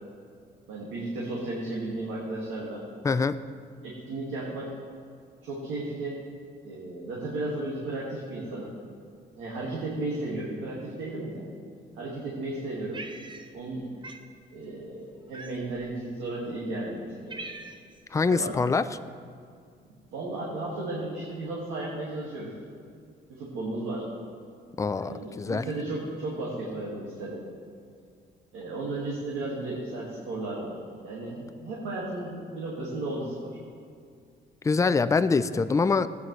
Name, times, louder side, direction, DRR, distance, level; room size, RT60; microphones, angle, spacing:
voice 1, 0.7-2.8 3.8-4.8 5.4-6.2 6.6-8.7 9.4-11.4 12.0-13.0 13.5-13.9 14.5-17.5 18.2-18.5 20.1-22.5 23.3-24.1 25.0-27.5 28.5-33.6, right 2 dB, 85° right, -5 dB, 2.0 m, -34 dB
Cat, 12.9-13.7 14.0-14.3 15.3-15.8 16.5-16.6 17.0-18.0, right 3 dB, 25° right, 0.7 m, -42 dB
voice 2, 18.1-18.8 24.8-25.7 34.6-36.1, left 4 dB, 15° left, 12 dB, 0.4 m, -24 dB
14.5 x 9.2 x 3.2 m, 2.2 s
cardioid pair, 90°, 20 cm